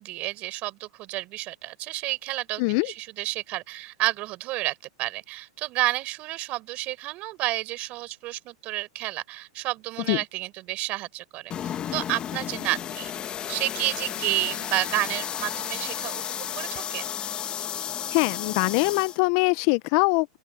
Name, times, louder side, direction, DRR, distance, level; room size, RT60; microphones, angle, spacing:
voice 1, 0.0-13.1 13.4-16.2 16.6-17.1, right 18 dB, 40° right, 5.6 m, -30 dB
voice 2, 2.6-2.9 10.1-10.2 18.1-20.4, left 27 dB, 50° left, 0.4 m, -23 dB
sound 1, 11.5-19.2, left 9 dB, 25° left, 1.2 m, -33 dB
open air
supercardioid pair, 135°, 4 cm